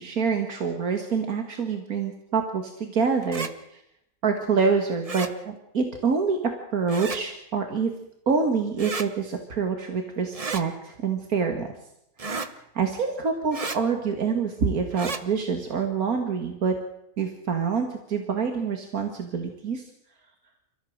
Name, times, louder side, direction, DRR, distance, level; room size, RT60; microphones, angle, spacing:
voice 1, 0.0-3.8 4.2-7.9 8.3-11.7 12.2-16.8 17.2-19.8, right 5 dB, 85° right, 5 dB, 2.2 m, -26 dB
sound 1, 3.2-3.5 5.0-5.3 6.9-7.2 8.8-9.1 10.3-10.6 12.2-12.5 13.5-13.8 14.9-15.2, right 4 dB, 25° right, 1.1 m, -32 dB
30.0 x 14.5 x 6.5 m, 0.80 s
omnidirectional pair, 1.5 m